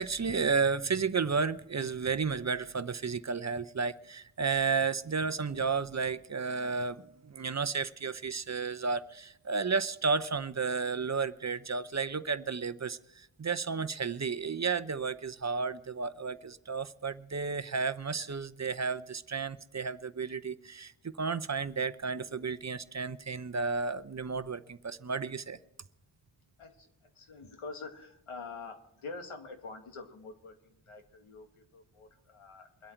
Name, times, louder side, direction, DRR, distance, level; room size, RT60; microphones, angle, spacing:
voice 1, 0.0-20.9 21.2-25.6, right 5 dB, 35° right, 12 dB, 0.8 m, -32 dB
voice 2, 26.6-32.9, left 4 dB, 90° left, 5 dB, 2.0 m, -46 dB
23.5 x 8.6 x 4.5 m, 0.80 s
cardioid pair, 50°, 49 cm